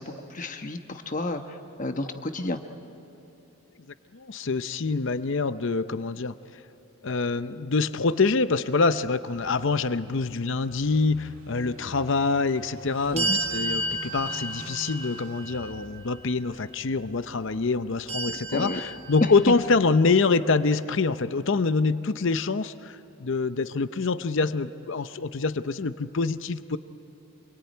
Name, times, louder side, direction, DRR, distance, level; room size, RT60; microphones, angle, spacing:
voice 1, 0.0-2.6 13.1-13.4 18.5-18.8, left 2 dB, 35° left, 6 dB, 1.1 m, -32 dB
voice 2, 4.1-6.3 7.0-26.8, left 4 dB, 55° left, 12 dB, 0.6 m, -25 dB
Car passing by / Idling, 9.3-20.0, right 2 dB, 65° right, 2.4 m, -48 dB
sound 1, 13.2-16.3 18.1-19.8, right 1 dB, 30° right, 1.0 m, -32 dB
27.0 x 22.5 x 9.4 m, 2.9 s
head